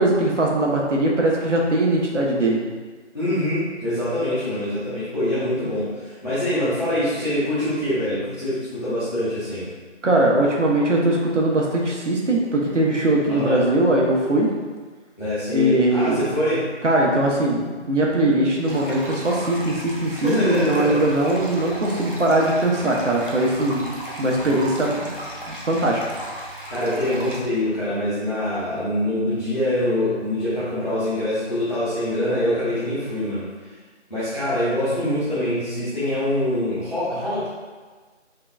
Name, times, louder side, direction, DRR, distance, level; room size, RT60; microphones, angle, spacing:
voice 1, 0.0-2.6 10.0-14.5 15.5-16.3 16.8-25.1 25.5-26.0, right 1 dB, 75° right, -2 dB, 0.9 m, -20 dB
voice 2, 3.1-9.7 13.3-13.6 15.2-16.7 20.1-21.1 26.7-33.5 34.1-37.5, left 1 dB, 35° left, -15 dB, 1.1 m, -24 dB
sound 1, 18.6-27.4, right 1 dB, 45° right, 0.6 m, -35 dB
3.8 x 3.3 x 2.3 m, 1.4 s
figure-of-eight pair, 180°, 36 cm